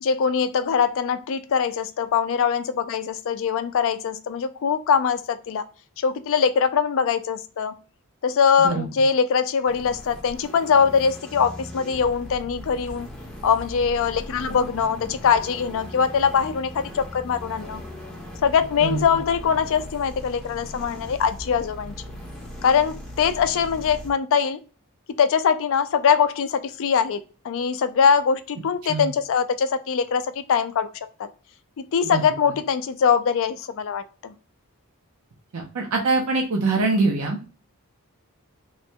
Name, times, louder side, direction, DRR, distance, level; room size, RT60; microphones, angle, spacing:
voice 1, 0.0-5.6 6.0-7.7 8.2-13.1 13.4-17.8 18.4-21.9 22.6-24.6 25.2-27.2 27.4-30.2 30.5-30.9 31.2-31.3 31.9-34.3, left 6 dB, 60° left, 11 dB, 0.4 m, -22 dB
sound 1, 9.6-24.1, left 1 dB, 5° left, 0.9 m, -39 dB
voice 2, 35.5-37.4, right 3 dB, 75° right, 0 dB, 0.6 m, -23 dB
3.1 x 2.2 x 2.6 m, 0.37 s
head